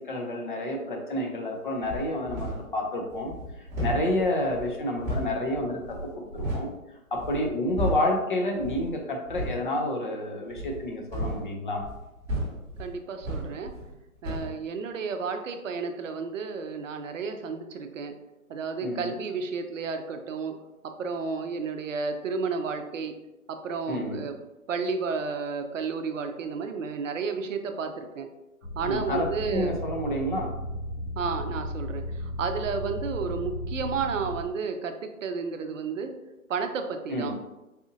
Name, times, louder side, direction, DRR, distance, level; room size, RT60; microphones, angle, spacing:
voice 1, 0.1-3.3 3.8-6.7 7.1-11.8 18.8-19.1 23.9-24.2 28.8-30.5 37.1-37.4, left 1 dB, 35° left, 1 dB, 0.5 m, -29 dB
sound 1, 1.8-2.7 3.1-6.7 7.1-8.2 8.6-8.9 9.2-9.6 10.5-14.0 14.2-14.5, equal, 5° right, 0.9 m, -34 dB
voice 2, 12.8-13.7 14.2-18.1 18.5-20.5 21.0-23.1 23.5-24.3 24.7-28.3 28.8-29.8 31.2-36.1 36.5-37.3, right 5 dB, 60° right, 6 dB, 0.6 m, -32 dB
sound 2, 28.6-34.4, equal, 90° left, 0.9 m, -35 dB
4.1 x 2.6 x 2.6 m, 0.98 s
hypercardioid pair, 150°, 43 cm